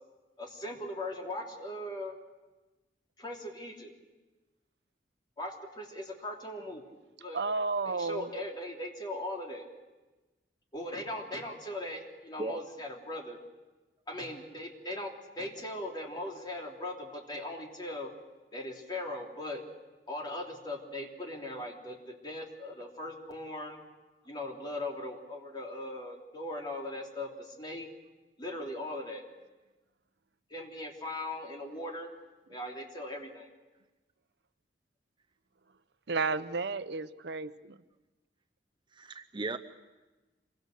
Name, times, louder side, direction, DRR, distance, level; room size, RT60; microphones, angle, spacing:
voice 1, 0.4-2.1 3.2-3.9 5.4-6.8 7.2-7.4 7.8-9.7 10.7-13.4 14.1-15.1 15.4-18.1 18.5-19.6 20.1-23.8 24.2-27.9 28.4-29.3 30.5-32.1 32.5-33.5, left 1 dB, 25° left, 0 dB, 3.3 m, -39 dB
voice 2, 7.3-8.3 36.1-37.8, right 4 dB, 70° right, 12 dB, 0.8 m, -32 dB
voice 3, 38.9-39.6, right 3 dB, 25° right, 6 dB, 0.7 m, -36 dB
26.0 x 23.5 x 6.7 m, 1.2 s
head